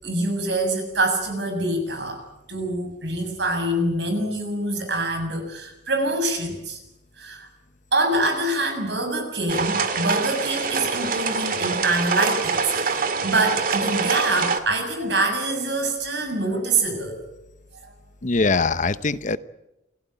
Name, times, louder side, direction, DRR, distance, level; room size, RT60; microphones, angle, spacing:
voice 1, 0.0-2.2 2.5-6.8 7.2-7.5 7.9-17.2, right 2 dB, 70° right, 5 dB, 7.2 m, -25 dB
sound 1, 9.5-14.6, right 5 dB, 55° right, 2.2 m, -25 dB
voice 2, 18.2-19.4, left 3 dB, 45° left, 14 dB, 0.9 m, -22 dB
28.5 x 17.0 x 9.2 m, 0.90 s
head